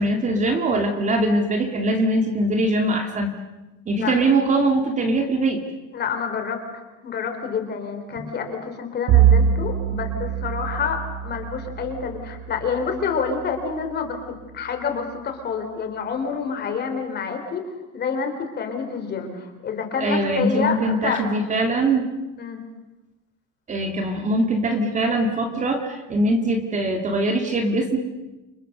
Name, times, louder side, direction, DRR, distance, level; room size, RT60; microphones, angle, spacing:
voice 1, 0.0-3.4 3.9-5.6 8.1-8.3 20.0-22.1 23.7-28.0, right 1 dB, 25° right, 4 dB, 2.3 m, -22 dB
voice 2, 5.9-14.2 14.5-17.6 17.9-21.2 22.4-22.6, left 5 dB, 30° left, 5 dB, 4.0 m, -28 dB
Bowed string instrument, 9.1-13.7, right 8 dB, 50° right, 1.1 m, -23 dB
29.5 x 25.5 x 6.7 m, 1.0 s
cardioid pair, 175°, 31 cm